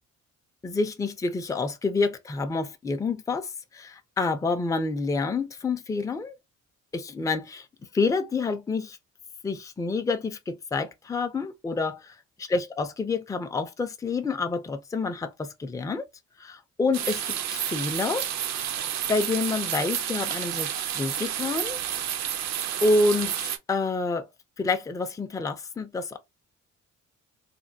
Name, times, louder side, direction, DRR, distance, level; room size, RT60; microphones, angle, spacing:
voice 1, 0.6-6.4 6.9-7.7 7.9-9.0 9.4-16.0 16.4-18.3 19.1-21.8 22.8-24.3 24.6-26.2, left 3 dB, 10° left, 0.4 m, -28 dB
sound 1, 16.9-23.6, right 10 dB, 65° right, 0.5 m, -30 dB
3.2 x 2.2 x 2.6 m
cardioid pair, 90°, 30 cm